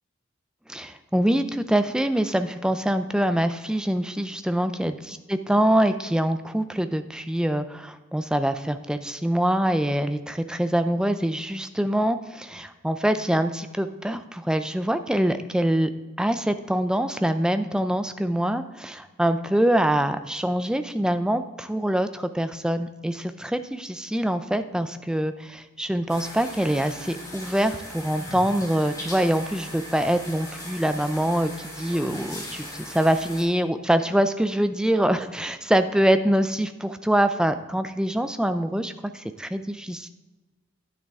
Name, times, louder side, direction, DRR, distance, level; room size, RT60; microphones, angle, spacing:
voice 1, 0.7-15.9 16.2-40.1, right 1 dB, 5° right, 9 dB, 0.4 m, -24 dB
sound 1, 26.1-33.4, left 1 dB, 15° left, 2.2 m, -39 dB
9.9 x 9.3 x 3.5 m, 1.2 s
head